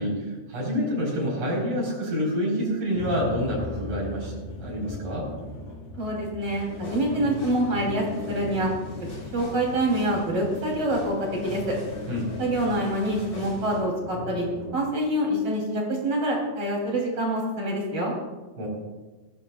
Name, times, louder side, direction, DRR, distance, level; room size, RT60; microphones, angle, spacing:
voice 1, 0.0-4.3 4.6-5.3 12.1-12.3 18.6-18.7, equal, 85° right, -5 dB, 5.9 m, -27 dB
sound 1, 2.9-14.8, left 4 dB, 90° left, 4.2 m, -38 dB
voice 2, 6.0-8.7 9.3-11.8 12.4-14.5 14.7-18.1, right 1 dB, 45° right, -2 dB, 4.4 m, -26 dB
sound 2, 6.4-13.8, left 1 dB, 35° left, 6.8 m, -43 dB
21.0 x 16.5 x 2.5 m, 1.2 s
omnidirectional pair, 3.3 m